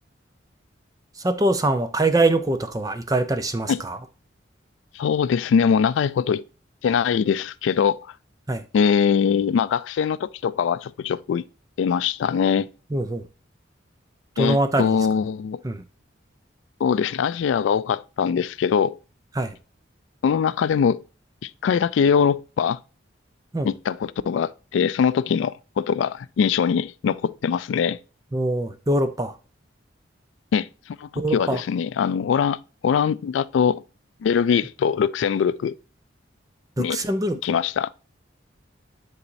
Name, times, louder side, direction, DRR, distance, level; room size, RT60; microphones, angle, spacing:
voice 1, 1.2-4.0 8.5-8.6 12.9-13.3 14.4-15.0 15.6-15.8 19.4-19.5 23.5-23.7 28.3-29.3 31.2-31.6 36.8-37.4, right 2 dB, 20° right, 0.5 m, -23 dB
voice 2, 4.9-6.4 6.8-8.1 8.7-11.4 11.8-12.7 14.4-15.6 16.8-19.0 20.2-21.0 21.4-22.8 23.6-28.0 30.5-33.8 34.2-35.7 36.8-37.0 37.4-37.9, left 7 dB, 80° left, 0.3 m, -22 dB
9.8 x 4.1 x 2.6 m
head